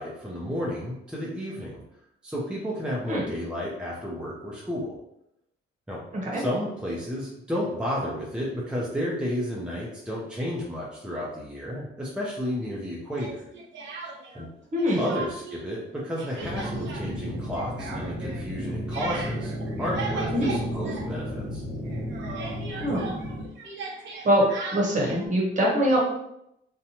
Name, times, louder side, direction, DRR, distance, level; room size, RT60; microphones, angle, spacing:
voice 1, 0.0-1.8 2.2-4.9 5.9-6.0 6.4-13.4 14.3-14.5 15.0-19.5 19.8-21.6, equal, 5° right, -5 dB, 0.6 m, -32 dB
Speech, 13.1-14.5 14.8-15.6 15.9-21.6 21.8-25.3, right 4 dB, 70° right, 0.7 m, -38 dB
sound 1, 16.4-23.4, equal, 35° left, 0.9 m, -33 dB
voice 2, 22.7-23.1 24.2-24.5 24.7-26.0, equal, 40° right, -3 dB, 1.0 m, -23 dB
2.7 x 2.2 x 2.9 m, 0.81 s
cardioid pair, 90°, 20 cm